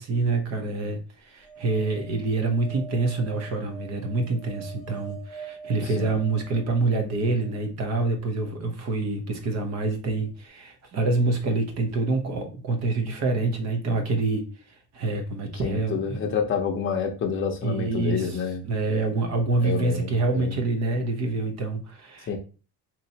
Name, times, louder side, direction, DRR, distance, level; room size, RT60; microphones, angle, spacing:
voice 1, 0.0-14.5 14.9-16.2 17.6-22.4, right 3 dB, 40° right, 5 dB, 0.9 m, -26 dB
sound 1, 1.4-7.6 9.9-10.0 10.1-10.2, right 7 dB, 85° right, 1.0 m, -44 dB
voice 2, 15.6-18.6 19.6-20.5 22.3-22.4, left 6 dB, 30° left, 3 dB, 0.7 m, -28 dB
4.1 x 3.0 x 2.8 m, 0.34 s
cardioid pair, 175°, 39 cm